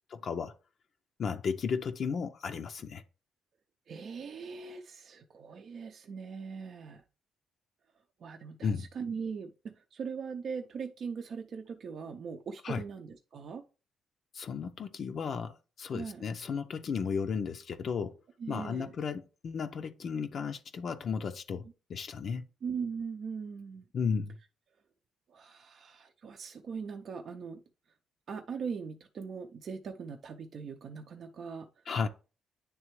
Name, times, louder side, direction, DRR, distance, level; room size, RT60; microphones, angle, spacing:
voice 1, 0.2-0.5 1.2-3.0 8.6-8.9 12.6-12.8 14.3-18.2 18.5-22.4 23.9-24.4 31.9-32.1, left 6 dB, 55° left, 0.5 m, -34 dB
voice 2, 3.9-7.0 8.2-13.6 15.9-16.2 18.4-18.9 22.6-23.9 25.3-27.6 28.3-31.7, right 6 dB, 60° right, 0.5 m, -40 dB
9.6 x 3.3 x 3.1 m
cardioid pair, 90°, 0 cm